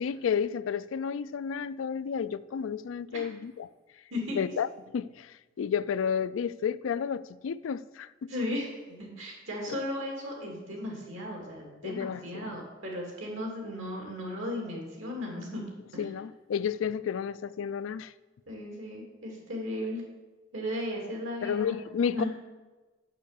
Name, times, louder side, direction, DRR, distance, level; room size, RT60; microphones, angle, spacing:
voice 1, 0.0-3.7 4.4-4.7 4.9-8.3 9.7-9.8 11.8-12.5 16.0-18.1 21.4-22.2, left 7 dB, 80° left, 0.3 m, -31 dB
voice 2, 8.3-15.6 15.9-16.1 18.5-20.0 20.5-21.8 22.1-22.3, left 1 dB, 85° right, 2.6 m, -36 dB
6.7 x 6.2 x 6.6 m
head